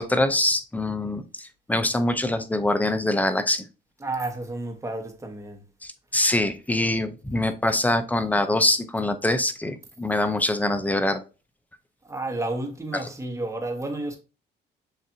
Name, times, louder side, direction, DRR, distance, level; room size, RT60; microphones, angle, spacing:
voice 1, 0.0-3.7 5.8-11.2, left 1 dB, 10° left, 0.5 m, -24 dB
voice 2, 4.0-5.6 12.0-14.2, right 2 dB, 15° right, 1.1 m, -31 dB
7.0 x 2.6 x 2.7 m
cardioid pair, 90°, 20 cm